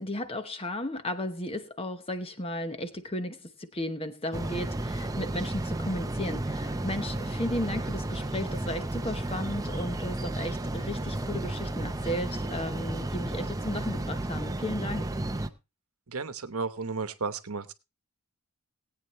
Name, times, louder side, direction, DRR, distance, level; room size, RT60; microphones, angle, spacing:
voice 1, 0.0-15.1, left 1 dB, 25° left, 9 dB, 1.0 m, -34 dB
sound 1, 4.3-15.5, right 1 dB, 15° right, 0.6 m, -33 dB
voice 2, 16.1-17.7, right 4 dB, 75° right, 11 dB, 1.0 m, -33 dB
19.0 x 8.8 x 3.1 m, 0.28 s
head